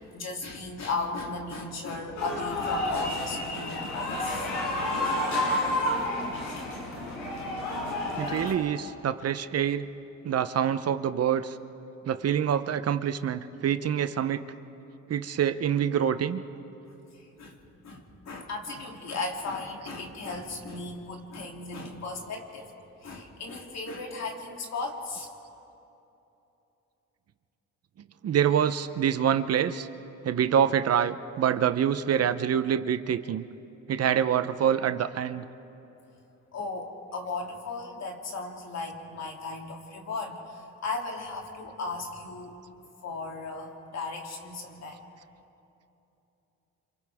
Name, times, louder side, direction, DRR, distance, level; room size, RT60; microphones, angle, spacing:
voice 1, 0.1-4.9 17.4-17.6 17.8-22.7 23.0-25.3 36.5-42.6 43.0-45.1, left 3 dB, 60° left, 0 dB, 3.0 m, -36 dB
sound 1, 2.2-8.5, left 1 dB, 85° left, 5.0 m, -30 dB
voice 2, 8.2-9.9 10.2-11.5 12.0-14.4 15.1-16.4 28.2-29.9 30.2-33.4 33.9-35.5, right 9 dB, 55° right, 11 dB, 0.8 m, -26 dB
29.0 x 27.0 x 3.6 m, 3.0 s
cardioid pair, 90°, 30 cm